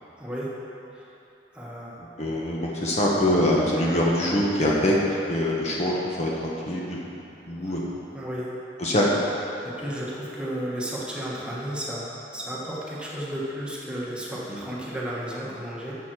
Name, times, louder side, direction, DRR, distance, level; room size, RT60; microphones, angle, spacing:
voice 1, 0.2-0.5 0.9-1.1 1.5-1.9 7.6-7.8 8.1-8.5 9.6-16.0, right 1 dB, 5° right, -6 dB, 1.3 m, -33 dB
voice 2, 2.0-4.9 5.3-5.9 6.2-7.1 7.5-7.9 8.8-9.1 14.5-14.6, left 1 dB, 35° left, -3 dB, 1.0 m, -24 dB
7.4 x 7.3 x 6.1 m, 2.9 s
head